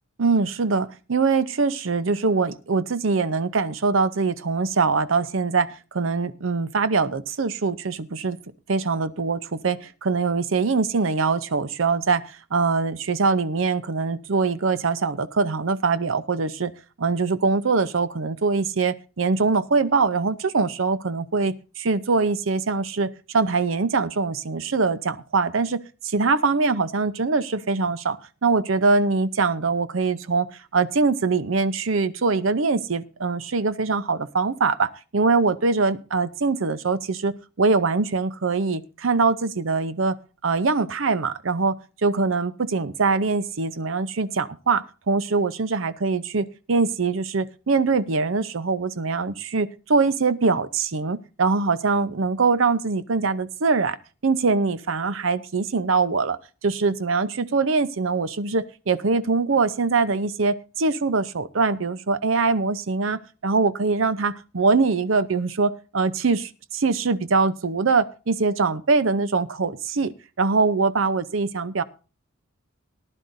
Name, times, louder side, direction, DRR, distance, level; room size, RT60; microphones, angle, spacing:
voice 1, 0.2-8.4 8.7-12.2 12.5-16.7 17.0-30.5 30.7-40.2 40.4-41.8 42.0-54.0 54.2-71.8, right 4 dB, 65° right, 14 dB, 0.7 m, -23 dB
18.5 x 11.0 x 2.6 m, 0.33 s
head